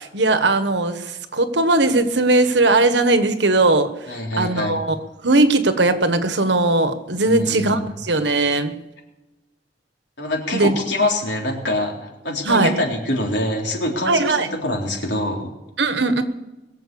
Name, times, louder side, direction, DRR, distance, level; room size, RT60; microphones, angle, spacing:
voice 1, 0.0-3.9 4.4-5.0 5.2-8.7 10.5-10.8 12.4-12.7 14.1-14.5 15.8-16.2, right 2 dB, 70° right, 9 dB, 1.3 m, -18 dB
voice 2, 4.1-4.7 7.2-7.8 10.2-15.5, left 1 dB, 75° left, 0 dB, 3.8 m, -25 dB
22.0 x 7.6 x 7.0 m, 1.1 s
head